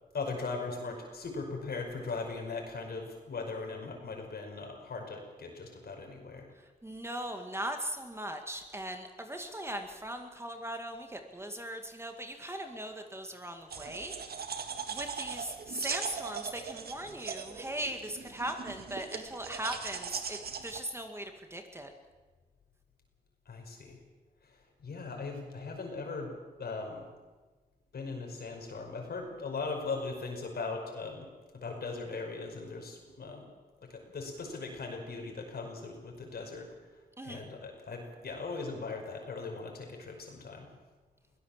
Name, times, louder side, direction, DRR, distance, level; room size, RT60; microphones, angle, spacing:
voice 1, 0.1-6.5 23.5-24.0 24.4-24.5 24.8-27.1 27.9-31.3 31.6-33.5 33.9-36.7 37.2-40.7, left 4 dB, 70° left, 2 dB, 5.5 m, -39 dB
voice 2, 6.8-14.3 14.9-21.9 37.2-37.4, right 1 dB, 15° right, 5 dB, 1.9 m, -39 dB
sound 1, 13.7-20.8, right 6 dB, 70° right, 1.7 m, -40 dB
22.5 x 17.0 x 7.4 m, 1.3 s
wide cardioid pair, 95°, 17 cm